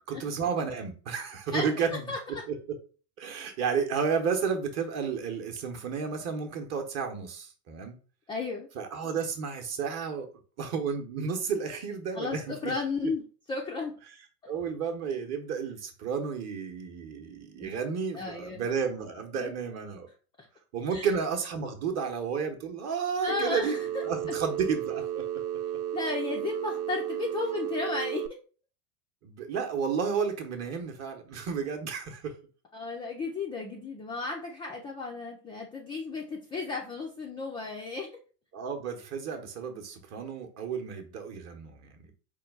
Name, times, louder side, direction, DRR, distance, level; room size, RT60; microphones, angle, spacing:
voice 1, 0.1-2.0 2.3-2.8 3.2-8.0 8.7-10.3 10.6-12.7 13.0-13.1 14.5-20.1 20.7-25.2 29.2-32.3 38.5-42.1, right 6 dB, 35° right, 4 dB, 0.9 m, -32 dB
voice 2, 2.1-2.4 8.3-8.7 12.1-13.2 13.5-14.0 17.6-17.7 18.1-18.6 19.4-19.5 20.9-21.1 23.2-23.8 25.9-28.2 32.7-38.1, left 4 dB, 10° left, -1 dB, 0.3 m, -34 dB
Telephone, 23.3-28.3, right 11 dB, 65° right, 0.5 m, -33 dB
4.5 x 2.3 x 3.5 m, 0.37 s
hypercardioid pair, 105°, 47 cm